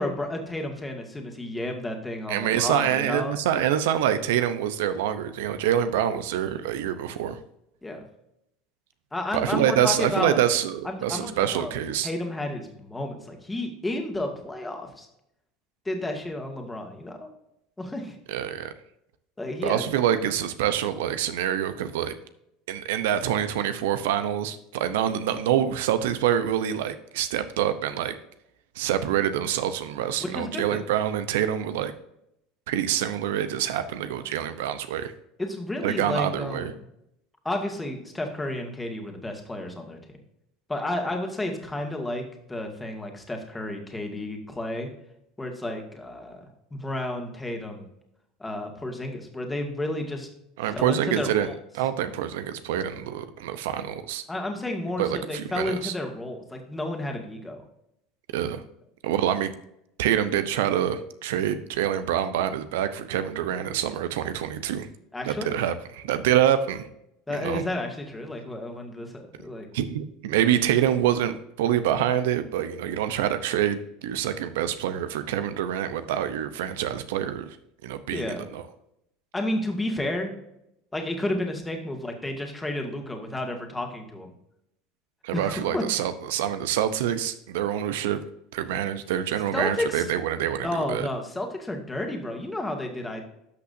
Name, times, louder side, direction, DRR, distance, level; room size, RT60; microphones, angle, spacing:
voice 1, 0.0-3.3 7.8-8.0 9.1-10.4 10.8-11.8 12.0-15.1 15.9-17.3 17.8-18.2 19.4-19.8 30.3-30.8 35.4-36.7 37.4-40.0 40.7-44.9 45.4-46.4 46.7-47.8 48.4-50.3 50.7-51.6 54.3-57.6 65.1-65.5 67.3-69.7 78.1-78.5 79.3-80.3 80.9-84.3 85.3-85.8 89.5-90.1 90.6-93.2, left 1 dB, 10° left, 3 dB, 1.9 m, -31 dB
voice 2, 2.3-7.4 9.3-12.1 18.3-18.7 19.6-22.1 22.7-28.1 28.8-31.9 32.7-35.1 35.8-36.7 50.6-51.5 51.7-54.3 55.0-55.9 58.3-58.6 59.0-59.5 60.0-64.9 65.2-66.9 67.3-67.6 69.7-77.6 77.8-78.6 85.2-88.2 88.5-91.1, right 10 dB, 85° right, 11 dB, 0.7 m, -26 dB
12.5 x 5.8 x 2.7 m, 0.79 s
supercardioid pair, 120°, 0 cm